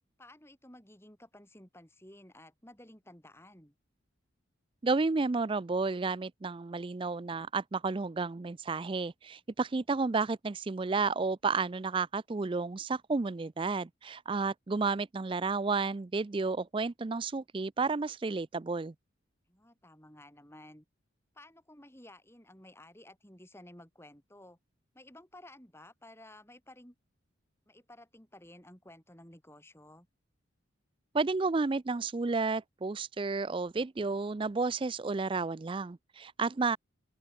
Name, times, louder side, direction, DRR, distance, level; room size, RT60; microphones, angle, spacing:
voice 1, 0.2-3.7 19.5-20.8 21.3-24.6 24.9-26.9 27.7-30.1, left 1 dB, 10° left, 6.7 m, -54 dB
voice 2, 4.8-18.9 31.1-36.8, right 4 dB, 25° right, 0.4 m, -31 dB
open air
head